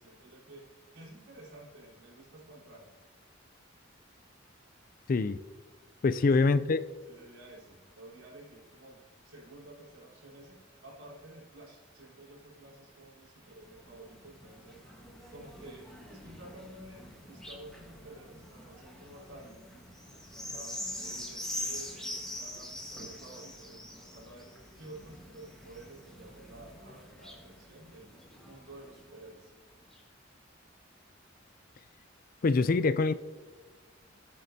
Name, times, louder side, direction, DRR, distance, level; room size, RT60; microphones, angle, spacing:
voice 1, 0.0-2.9 6.1-6.6 7.1-15.0 15.3-19.9 20.5-24.5 24.8-28.1 28.4-29.5, right 1 dB, 85° right, -4 dB, 3.8 m, -51 dB
voice 2, 5.1-5.4 6.0-6.8 32.4-33.1, left 3 dB, 45° left, 13 dB, 0.4 m, -24 dB
sound 1, 13.5-29.3 29.9-30.0, left 1 dB, 5° left, 1.5 m, -44 dB
18.5 x 7.5 x 2.8 m, 1.4 s
head